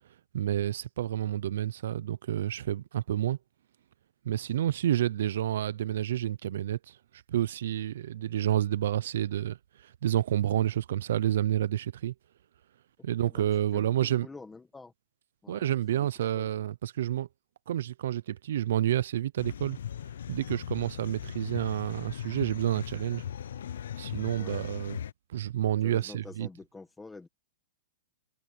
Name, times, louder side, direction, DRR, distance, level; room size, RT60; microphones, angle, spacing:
voice 1, 0.3-3.4 4.2-6.9 7.3-9.6 9.8-12.1 13.0-14.3 15.5-17.3 17.7-19.8 20.3-23.2 24.0-25.0 25.3-26.5, right 11 dB, 55° right, 0.5 m, -29 dB
voice 2, 13.7-14.9 15.4-15.7 15.9-16.1 16.3-16.5 24.3-24.6 25.8-27.3, left 3 dB, 5° left, 1.6 m, -47 dB
sound 1, 19.4-25.1, left 9 dB, 70° left, 0.5 m, -39 dB
hypercardioid pair, 180°, 0 cm